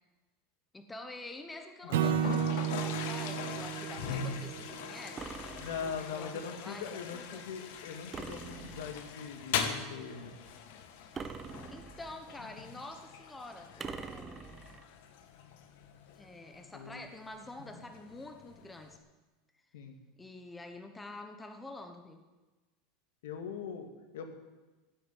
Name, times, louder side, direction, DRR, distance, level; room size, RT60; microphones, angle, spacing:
voice 1, 0.7-5.3 5.8-7.5 11.7-14.7 16.1-19.0 20.2-22.2, left 2 dB, 10° left, 5 dB, 1.1 m, -47 dB
voice 2, 1.8-2.2 5.6-10.3 16.7-17.0 17.7-17.8 19.7-20.0 23.2-24.3, left 6 dB, 85° left, 5 dB, 2.5 m, -41 dB
Toilet flush, 1.9-19.0, left 7 dB, 65° left, 1.6 m, -42 dB
Acoustic guitar / Strum, 1.9-5.2, right 10 dB, 85° right, 1.5 m, -33 dB
sound 1, 5.2-6.2 8.1-9.2 11.1-12.3 13.8-14.9, right 5 dB, 15° right, 0.8 m, -44 dB
15.0 x 7.7 x 9.4 m, 1.2 s
supercardioid pair, 165°, 0 cm